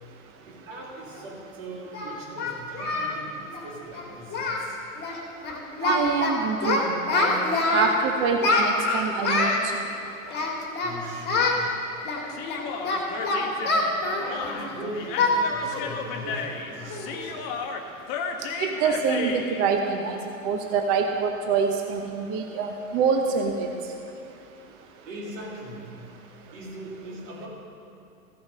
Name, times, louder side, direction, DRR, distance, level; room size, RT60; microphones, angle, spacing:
voice 1, 0.5-4.8 10.6-11.7 13.1-17.5 25.1-25.9 26.5-27.5, right 1 dB, 65° right, -3 dB, 2.9 m, -40 dB
Singing, 1.1-1.2 1.9-3.2 3.4-3.6 3.9-4.1 4.3-4.7 5.0-5.2 5.4-6.3 6.6-7.9 8.4-9.6 10.3-10.9 11.3-11.6 12.1-14.7 15.2-15.4 15.7-15.9 16.3-16.4 16.9-17.2, left 3 dB, 25° left, 1.9 m, -25 dB
voice 2, 5.8-9.5 18.6-20.2 20.4-23.7, right 5 dB, 30° right, 4 dB, 0.8 m, -25 dB
Human voice, 12.3-19.7, left 6 dB, 45° left, 1.1 m, -34 dB
15.0 x 7.0 x 5.4 m, 2.6 s
figure-of-eight pair, 100°, 43 cm